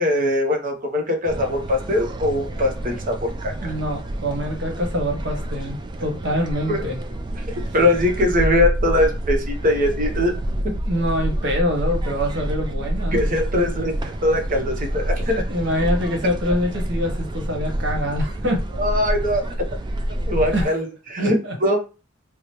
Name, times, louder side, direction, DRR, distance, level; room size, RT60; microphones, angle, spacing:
voice 1, 0.0-3.7 6.7-6.9 7.7-10.3 13.1-15.4 18.8-19.7 20.3-21.8, left 1 dB, 45° right, 3 dB, 0.7 m, -21 dB
sound 1, 1.3-20.6, right 1 dB, 25° right, 0.3 m, -27 dB
voice 2, 3.5-7.0 10.8-13.2 15.5-18.6 20.5-20.7 21.2-21.5, equal, 60° right, 2 dB, 1.0 m, -25 dB
4.7 x 2.0 x 2.9 m, 0.33 s
head